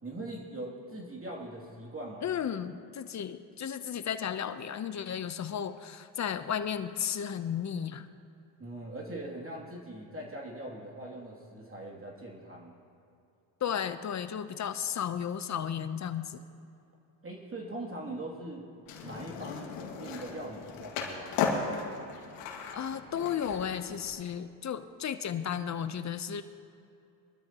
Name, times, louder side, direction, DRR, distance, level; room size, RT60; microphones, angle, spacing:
voice 1, 0.0-2.2 8.6-12.8 17.2-18.7 19.0-21.3, right 1 dB, 25° right, -2 dB, 2.8 m, -41 dB
voice 2, 2.2-8.1 13.6-16.4 22.7-26.4, left 8 dB, 35° left, 11 dB, 0.8 m, -34 dB
Skateboard, 18.9-24.1, left 5 dB, 80° left, 2.2 m, -36 dB
23.5 x 13.0 x 3.0 m, 2.6 s
supercardioid pair, 85°, 49 cm